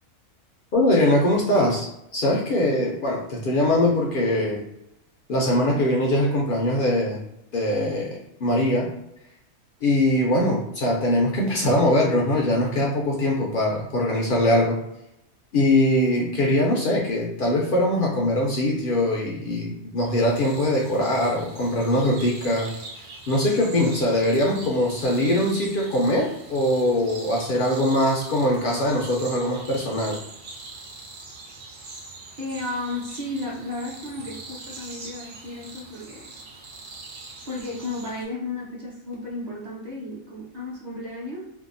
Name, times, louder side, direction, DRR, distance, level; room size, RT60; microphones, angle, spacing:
voice 1, 0.7-4.6 5.3-7.2 7.5-8.9 9.8-14.8 15.5-22.7 23.3-30.2, left 1 dB, 65° left, -2 dB, 0.5 m, -22 dB
sound 1, 20.1-38.2, right 3 dB, 70° right, 1.0 m, -42 dB
voice 2, 32.4-36.3 37.4-41.4, left 2 dB, 40° right, -5 dB, 0.8 m, -33 dB
2.7 x 2.2 x 2.5 m, 0.82 s
omnidirectional pair, 1.4 m